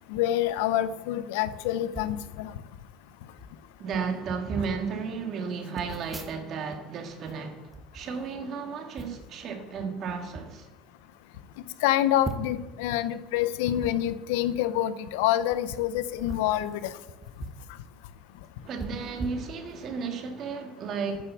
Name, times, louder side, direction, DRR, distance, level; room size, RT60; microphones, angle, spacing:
voice 1, 0.1-2.5 11.8-16.9, left 12 dB, 85° left, 0.6 m, -27 dB
sound 1, 1.9-2.2 3.0-3.1 3.3-3.6 4.2-4.8 5.7-6.8 7.1-8.5 9.0-9.3 10.1-10.5 11.0-11.1 11.3-11.4 12.2-12.7 13.8-13.9 15.4-15.6 16.1-17.7 18.0-18.1 18.8-20.0 20.5-20.6, right 3 dB, 15° right, 1.2 m, -40 dB
voice 2, 3.8-10.7 18.6-21.3, right 5 dB, 45° right, 1.9 m, -34 dB
9.5 x 6.8 x 7.2 m
cardioid pair, 130°, 0 cm